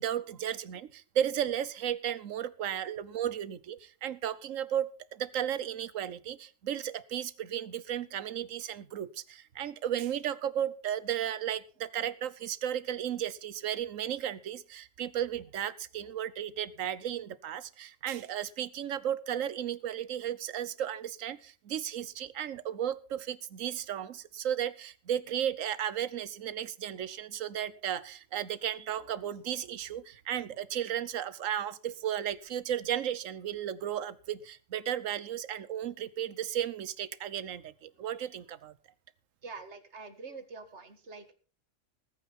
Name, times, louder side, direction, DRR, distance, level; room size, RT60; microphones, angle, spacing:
voice 1, 0.0-38.7, right 10 dB, 80° right, 18 dB, 1.2 m, -34 dB
voice 2, 39.4-41.3, right 4 dB, 60° right, 9 dB, 2.0 m, -45 dB
19.5 x 9.2 x 4.2 m, 0.37 s
omnidirectional pair, 1.3 m